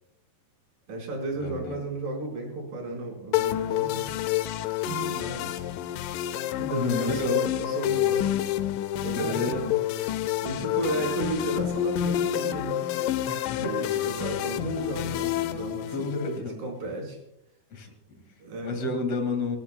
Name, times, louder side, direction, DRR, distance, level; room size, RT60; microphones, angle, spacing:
voice 1, 0.9-4.1 4.9-5.7 6.6-8.2 9.0-9.8 10.4-12.9 13.6-17.2 18.1-18.9, right 2 dB, 55° right, -1 dB, 5.9 m, -34 dB
voice 2, 1.4-1.8 6.7-7.5 9.1-9.6 13.3-13.9 15.1-15.3 15.9-16.6 17.7-17.9 18.6-19.6, left 3 dB, 50° left, 5 dB, 2.8 m, -30 dB
sound 1, 3.3-16.4, left 12 dB, 80° left, 2.0 m, -28 dB
28.5 x 11.0 x 2.2 m, 0.77 s
omnidirectional pair, 4.3 m